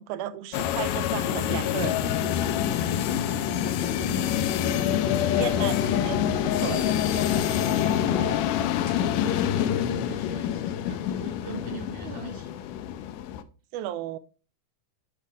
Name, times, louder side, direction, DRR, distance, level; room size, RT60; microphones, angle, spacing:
voice 1, 0.0-2.2 4.0-4.1 5.2-6.9 12.0-12.3 13.7-14.2, right 12 dB, 80° right, 1.9 m, -35 dB
sound 1, 0.5-13.4, left 10 dB, 85° left, 2.2 m, -26 dB
sound 2, 1.1-8.9, left 3 dB, 20° left, 2.9 m, -35 dB
voice 2, 8.9-12.7 13.0-13.1, right 2 dB, 45° right, 2.8 m, -41 dB
8.3 x 5.2 x 3.5 m
omnidirectional pair, 3.7 m